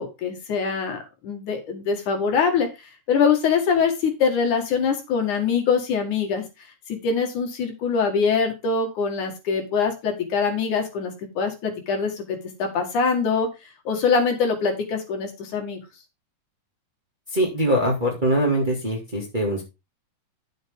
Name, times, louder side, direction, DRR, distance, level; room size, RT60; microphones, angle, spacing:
voice 1, 0.0-2.7 3.1-6.4 6.9-13.5 13.8-15.8, left 5 dB, 65° left, 3 dB, 3.1 m, -23 dB
voice 2, 17.3-19.6, right 1 dB, 15° right, -1 dB, 2.2 m, -22 dB
10.0 x 7.8 x 3.6 m, 0.26 s
omnidirectional pair, 4.0 m